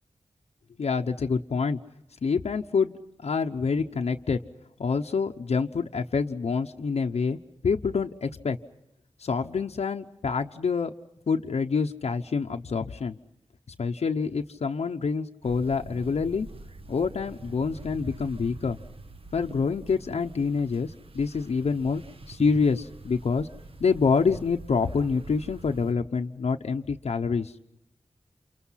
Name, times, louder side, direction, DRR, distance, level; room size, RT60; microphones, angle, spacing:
voice 1, 0.8-1.8 2.2-2.9 3.2-4.4 4.8-7.4 7.6-8.6 9.2-10.9 11.3-13.2 13.8-16.5 16.9-18.8 19.3-23.5 23.8-27.5, left 5 dB, 90° left, 3 dB, 0.9 m, -27 dB
sound 1, 15.4-25.9, right 2 dB, 60° right, 1.4 m, -45 dB
29.5 x 28.5 x 5.8 m, 0.83 s
wide cardioid pair, 90°, 11 cm